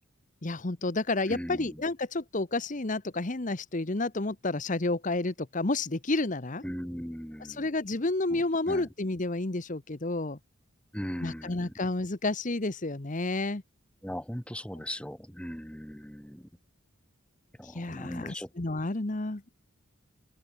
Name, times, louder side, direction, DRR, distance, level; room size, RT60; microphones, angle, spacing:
voice 1, 0.4-6.6 7.5-10.4 11.2-13.6 17.6-19.5, left 2 dB, 40° left, 1.0 m, -30 dB
voice 2, 1.3-1.8 6.6-7.7 8.3-8.9 10.9-11.7 14.0-16.5 17.6-18.5, equal, 5° left, 2.6 m, -39 dB
open air
head